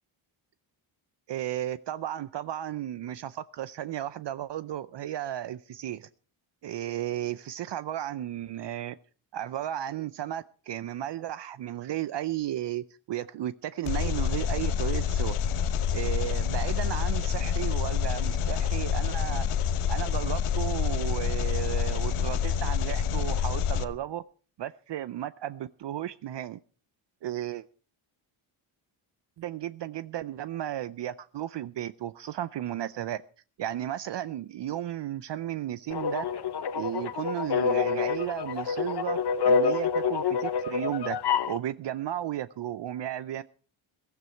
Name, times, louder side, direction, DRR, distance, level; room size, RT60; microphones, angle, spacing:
voice 1, 1.3-6.1 6.6-9.0 9.3-15.4 15.9-19.5 19.9-24.2 24.6-26.6 27.2-27.6 29.4-33.2 33.6-36.3 36.7-39.2 39.4-41.2 41.5-43.4, right 12 dB, 60° right, 15 dB, 0.6 m, -34 dB
Engine, 13.9-23.8, left 7 dB, 85° left, 1.1 m, -27 dB
sound 1, 35.9-41.6, left 6 dB, 50° left, 1.1 m, -27 dB
15.5 x 14.0 x 4.5 m, 0.40 s
cardioid pair, 100°, 50 cm